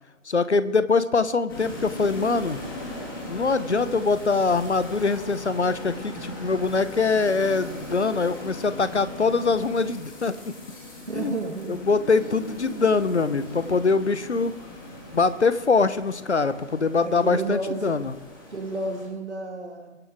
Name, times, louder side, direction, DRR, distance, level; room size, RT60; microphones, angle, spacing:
voice 1, 0.3-2.6 3.3-10.3 11.1-11.4 11.7-14.5 15.1-18.1, left 4 dB, 60° left, 13 dB, 1.0 m, -23 dB
sound 1, 1.5-19.1, left 1 dB, 15° left, 1.9 m, -39 dB
voice 2, 11.1-11.8 17.0-18.0 18.5-20.0, right 2 dB, 55° right, 1 dB, 2.3 m, -31 dB
22.5 x 9.5 x 3.6 m, 1.2 s
figure-of-eight pair, 155°, 40 cm